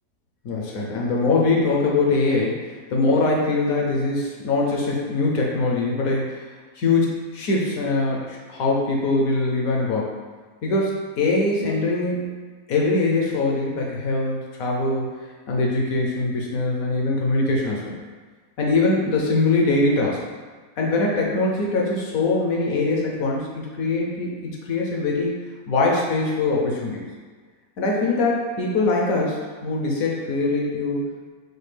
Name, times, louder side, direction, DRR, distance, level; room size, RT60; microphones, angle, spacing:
voice 1, 0.4-6.4 6.8-10.2 10.6-12.4 12.7-15.0 15.5-17.9 18.6-20.2 20.8-25.4 25.7-27.1 27.8-31.3, left 3 dB, 65° left, -2 dB, 0.9 m, -22 dB
6.4 x 2.3 x 3.3 m, 1.5 s
omnidirectional pair, 2.1 m